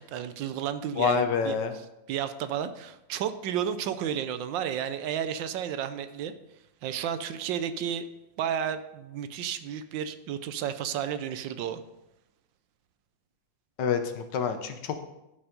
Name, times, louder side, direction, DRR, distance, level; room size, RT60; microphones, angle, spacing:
voice 1, 0.0-1.6 2.1-6.3 6.8-8.0 8.4-11.8, right 9 dB, 75° right, 11 dB, 1.3 m, -32 dB
voice 2, 1.0-1.7 13.8-15.0, left 6 dB, 70° left, 8 dB, 1.4 m, -27 dB
11.5 x 5.4 x 5.1 m, 0.91 s
omnidirectional pair, 2.1 m